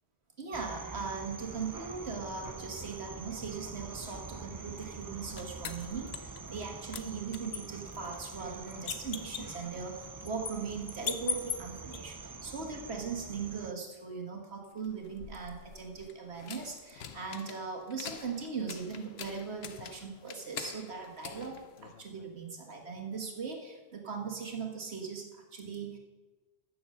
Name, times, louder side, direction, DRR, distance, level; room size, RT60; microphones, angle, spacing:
voice 1, 0.4-26.0, right 5 dB, 90° right, 2 dB, 2.0 m, -39 dB
sound 1, 0.5-13.7, right 4 dB, 30° right, 0.4 m, -45 dB
sound 2, 4.8-6.7 6.9-12.0 14.8-22.3, left 7 dB, 75° left, 1.1 m, -43 dB
14.0 x 7.0 x 6.5 m, 1.3 s
omnidirectional pair, 1.1 m